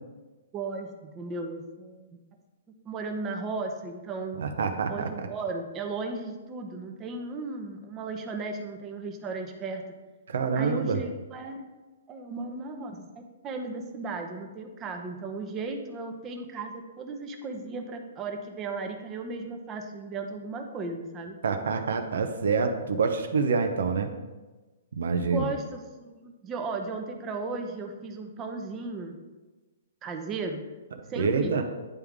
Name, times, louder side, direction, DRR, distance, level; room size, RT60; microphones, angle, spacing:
voice 1, 0.5-2.2 2.8-4.4 4.9-9.8 10.5-11.6 12.1-13.0 13.4-21.4 25.3-29.2 30.0-30.6 31.1-31.6, right 3 dB, 20° right, 3 dB, 0.8 m, -35 dB
voice 2, 4.4-5.3 10.3-11.0 21.4-24.1 24.9-25.5 31.2-31.6, right 5 dB, 75° right, 6 dB, 0.7 m, -26 dB
9.5 x 3.5 x 3.5 m, 1.2 s
hypercardioid pair, 140°, 0 cm